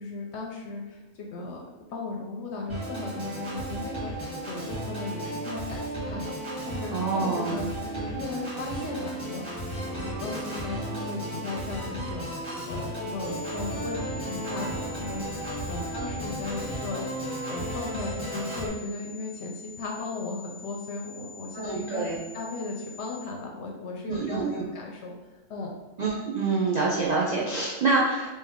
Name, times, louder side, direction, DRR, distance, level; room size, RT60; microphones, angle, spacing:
voice 1, 0.0-1.6 1.9-17.0 17.5-25.1 25.5-25.7, left 3 dB, 65° left, 0 dB, 0.8 m, -36 dB
Organ, 2.7-18.7, right 1 dB, 20° right, 1.5 m, -34 dB
voice 2, 6.9-7.6 21.5-22.2 24.1-24.6 26.0-28.3, right 3 dB, 70° right, -4 dB, 0.4 m, -26 dB
sound 1, 13.2-23.2, left 3 dB, 50° right, 1.1 m, -46 dB
3.2 x 2.8 x 3.5 m, 1.1 s
omnidirectional pair, 1.4 m